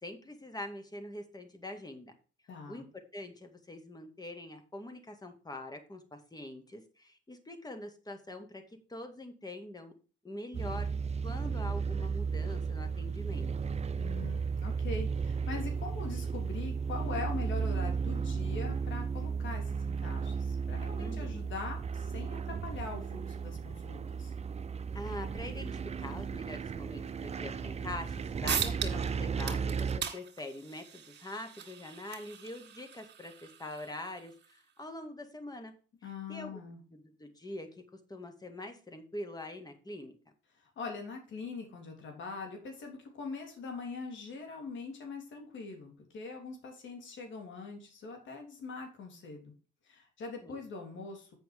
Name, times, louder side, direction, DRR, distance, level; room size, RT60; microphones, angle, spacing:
voice 1, 0.0-2.1 2.7-8.6 8.9-9.9 10.2-10.9 11.2-13.5 21.0-21.5 24.9-35.7 36.0-36.6 36.9-37.7 38.1-40.1 50.4-50.7, left 1 dB, 20° left, 6 dB, 2.1 m, -44 dB
voice 2, 2.5-2.8 14.0-24.3 36.0-36.8 40.6-49.5 49.9-51.3, left 4 dB, 70° left, 3 dB, 3.4 m, -42 dB
sound 1, 10.5-30.0, right 5 dB, 35° right, 0.6 m, -34 dB
sound 2, 28.1-28.2 28.5-29.1 29.4-34.5, right 8 dB, 60° right, 2.1 m, -39 dB
8.2 x 5.8 x 5.0 m, 0.37 s
cardioid pair, 90°, 20 cm